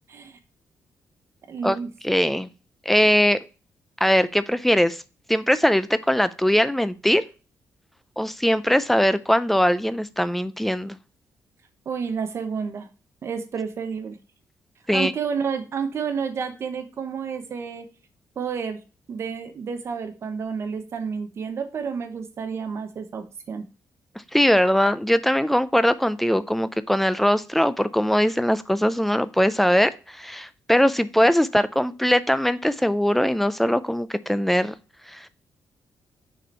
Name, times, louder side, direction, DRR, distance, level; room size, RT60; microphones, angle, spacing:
voice 1, 0.1-0.4 1.5-1.9 11.9-12.9 13.2-14.2 14.9-17.9 18.4-18.8 19.1-23.6, right 6 dB, 45° right, 8 dB, 0.9 m, -30 dB
voice 2, 2.0-2.5 2.9-3.4 4.0-5.0 5.3-7.2 8.2-11.0 14.9-15.1 24.3-34.7 35.1-35.3, equal, 5° left, 14 dB, 0.4 m, -21 dB
6.3 x 4.3 x 4.3 m, 0.33 s
wide cardioid pair, 165°, 6 cm